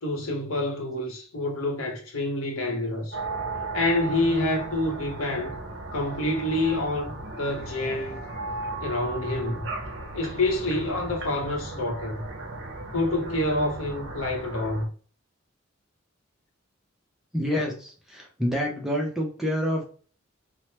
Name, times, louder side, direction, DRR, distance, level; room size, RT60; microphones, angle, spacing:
voice 1, 0.0-3.2 3.7-5.6 5.9-8.2 8.8-9.7 10.1-12.2 12.9-14.9, left 2 dB, 75° left, 0.8 m, -27 dB
sound 1, 3.1-14.8, right 2 dB, 55° right, 0.7 m, -36 dB
voice 2, 17.3-19.8, equal, ahead, 0.5 m, -27 dB
3.1 x 2.1 x 2.9 m
head